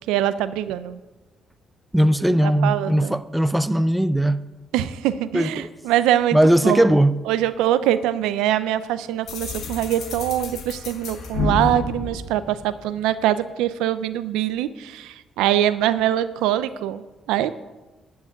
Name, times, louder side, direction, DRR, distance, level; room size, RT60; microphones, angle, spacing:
voice 1, 0.1-1.0 2.4-3.1 4.7-6.4 6.6-6.9 7.3-17.5, right 12 dB, 85° right, 0.5 m, -23 dB
voice 2, 1.9-4.4 5.3-5.7 6.3-7.2, right 1 dB, 5° right, 0.6 m, -19 dB
sound 1, 9.3-13.1, left 3 dB, 70° left, 1.9 m, -30 dB
13.5 x 4.8 x 8.9 m
supercardioid pair, 65°, 0 cm